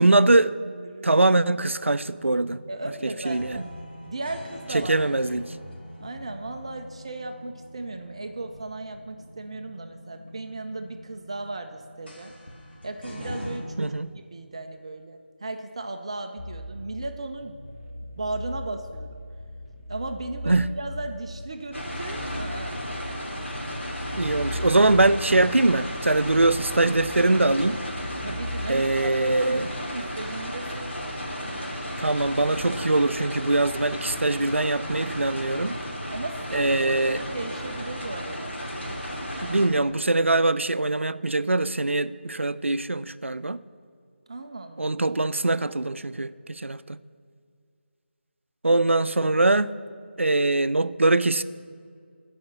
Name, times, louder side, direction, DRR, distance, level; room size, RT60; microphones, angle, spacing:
voice 1, 0.0-0.6 1.0-2.6 3.2-3.7 4.7-5.5 13.8-14.2 20.5-20.7 24.1-27.8 28.7-29.7 32.0-35.8 36.5-37.2 39.4-43.6 44.8-47.0 48.6-49.7 50.2-51.4, right 2 dB, 85° right, 15 dB, 0.4 m, -22 dB
voice 2, 0.7-1.1 2.7-3.7 4.1-5.0 6.0-12.3 12.8-17.6 18.2-19.2 19.9-22.8 28.2-30.9 36.1-38.6 44.3-44.9, right 2 dB, 30° right, 6 dB, 0.4 m, -36 dB
sound 1, 2.0-13.6, equal, 55° left, 2.1 m, -43 dB
sound 2, 16.4-28.9, left 1 dB, 15° left, 0.7 m, -39 dB
sound 3, 21.7-39.7, equal, 80° left, 2.9 m, -34 dB
11.5 x 5.0 x 7.2 m, 2.2 s
figure-of-eight pair, 165°, 7 cm